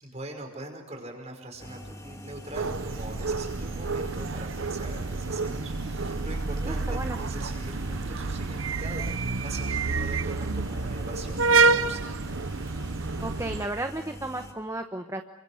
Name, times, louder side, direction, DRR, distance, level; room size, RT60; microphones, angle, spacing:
voice 1, 0.0-12.1, right 2 dB, 30° right, 3 dB, 5.4 m, -42 dB
sound 1, 1.6-14.5, equal, 15° left, 2.8 m, -44 dB
sound 2, 2.5-13.7, right 4 dB, 65° right, 0.8 m, -28 dB
voice 2, 6.6-7.2 13.2-15.2, right 1 dB, 15° right, 6 dB, 1.0 m, -33 dB
29.0 x 24.5 x 6.5 m, 0.90 s
head